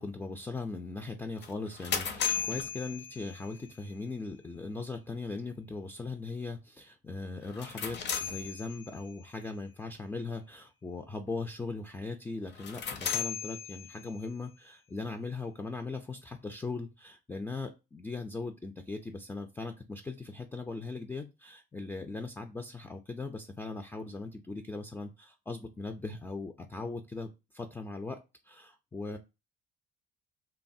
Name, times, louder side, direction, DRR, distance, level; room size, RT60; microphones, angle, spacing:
voice 1, 0.0-29.2, left 3 dB, 10° left, 6 dB, 0.3 m, -39 dB
sound 1, 1.4-3.7 7.4-9.1 12.5-14.3, left 7 dB, 55° left, 0.7 m, -36 dB
3.1 x 2.0 x 2.6 m, 0.26 s
supercardioid pair, 80°, 21 cm